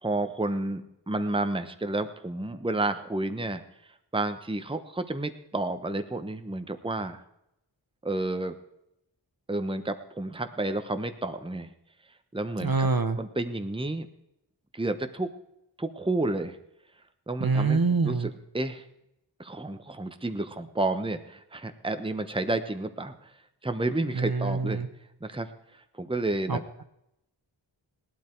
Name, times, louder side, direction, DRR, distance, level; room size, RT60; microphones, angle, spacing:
voice 1, 0.0-3.6 4.1-7.2 8.0-8.5 9.5-11.7 12.3-12.9 13.2-14.1 14.7-15.3 15.8-16.6 17.3-18.8 19.4-23.3 23.6-24.9 25.2-25.5 26.0-26.6, right 2 dB, 10° right, 9 dB, 1.0 m, -31 dB
voice 2, 12.6-13.2 17.4-18.3 24.1-24.9 26.5-26.8, right 4 dB, 50° right, 9 dB, 1.1 m, -26 dB
17.0 x 12.0 x 4.6 m, 0.81 s
wide cardioid pair, 40°, 45 cm